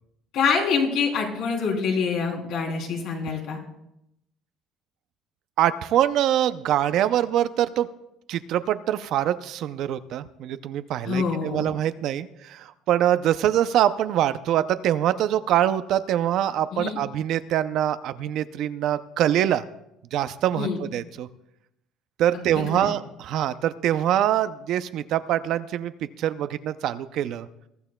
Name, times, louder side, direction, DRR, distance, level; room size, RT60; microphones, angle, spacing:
voice 1, 0.3-3.6 11.0-11.7 16.7-17.0 20.6-20.8 22.3-22.9, left 5 dB, 55° left, 0 dB, 3.2 m, -26 dB
voice 2, 5.6-7.9 8.3-19.6 20.1-21.3 22.2-25.9 26.2-27.5, right 11 dB, 50° right, 12 dB, 0.5 m, -24 dB
22.0 x 14.0 x 2.2 m, 0.83 s
cardioid pair, 180°, 0 cm